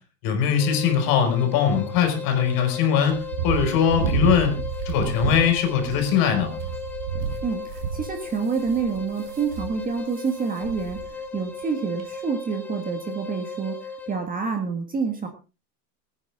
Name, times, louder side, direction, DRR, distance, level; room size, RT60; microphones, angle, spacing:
voice 1, 0.2-4.5 4.9-6.5, left 8 dB, 45° left, 5 dB, 5.4 m, -21 dB
sound 1, 0.6-14.2, left 4 dB, 5° left, 3.0 m, -37 dB
sound 2, 3.1-10.3 10.6-11.1 11.4-11.5 12.0-12.1, right 7 dB, 85° right, 3.2 m, -30 dB
voice 2, 7.4-15.3, right 5 dB, 15° right, 4 dB, 1.8 m, -28 dB
22.5 x 9.6 x 3.6 m, 0.33 s
supercardioid pair, 150°, 50 cm